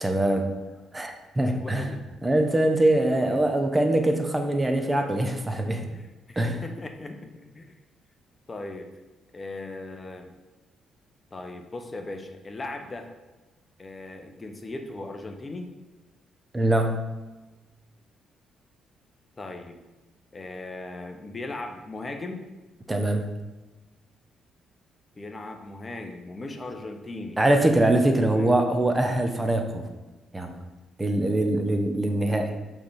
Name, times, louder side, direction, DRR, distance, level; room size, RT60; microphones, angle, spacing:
voice 1, 0.0-0.5 0.9-1.9 2.2-5.9 6.4-6.6 16.5-17.1 22.9-23.3 27.4-29.9 30.3-30.6 31.0-32.5, right 1 dB, 15° right, 5 dB, 0.8 m, -23 dB
voice 2, 1.4-2.0 3.0-3.5 5.9-7.7 8.5-8.9 9.3-10.3 11.3-13.1 13.8-15.7 19.4-19.8 20.3-22.4 25.2-27.4 28.2-28.5, left 2 dB, 30° left, 5 dB, 0.8 m, -38 dB
6.3 x 3.4 x 5.7 m, 1.2 s
cardioid pair, 90°, 0 cm